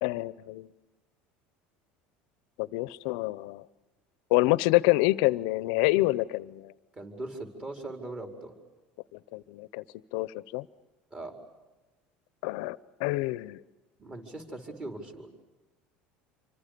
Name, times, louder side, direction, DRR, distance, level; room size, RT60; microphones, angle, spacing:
voice 1, 0.0-0.7 2.6-3.6 4.3-6.7 9.1-9.8 10.1-10.7 12.4-13.6, left 20 dB, 75° left, 19 dB, 0.8 m, -27 dB
voice 2, 6.9-8.5 11.1-11.3 14.0-15.3, right 2 dB, 25° right, 4 dB, 4.8 m, -40 dB
28.0 x 25.0 x 6.9 m, 1.2 s
supercardioid pair, 110°, 4 cm